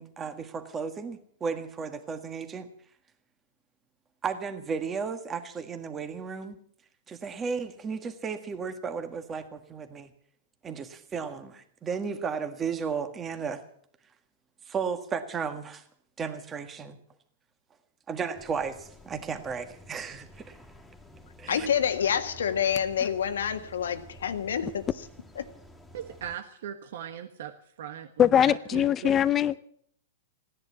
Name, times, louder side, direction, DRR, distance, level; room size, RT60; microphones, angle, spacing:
voice 1, 0.0-2.7 4.2-6.6 7.1-10.1 10.6-13.6 14.7-15.8 16.2-17.0 18.1-20.6 21.4-21.7, right 5 dB, 20° right, 8 dB, 1.6 m, -34 dB
sound 1, 18.3-26.4, equal, 5° left, 2.4 m, -51 dB
voice 2, 21.5-24.9 25.4-25.5, left 8 dB, 80° left, 9 dB, 1.6 m, -27 dB
voice 3, 25.9-29.1, right 9 dB, 65° right, 7 dB, 1.4 m, -39 dB
voice 4, 28.2-29.6, left 9 dB, 25° left, 14 dB, 0.6 m, -22 dB
16.0 x 10.5 x 8.3 m, 0.65 s
hypercardioid pair, 130°, 0 cm